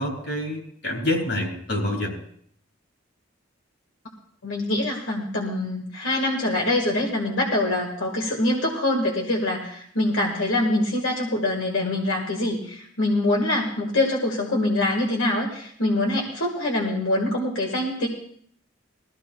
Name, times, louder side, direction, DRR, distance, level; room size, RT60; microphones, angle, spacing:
voice 1, 0.0-2.1, left 1 dB, 65° left, 0 dB, 3.2 m, -27 dB
voice 2, 4.4-18.1, left 1 dB, 85° left, -1 dB, 1.7 m, -24 dB
20.0 x 14.5 x 2.3 m, 0.63 s
head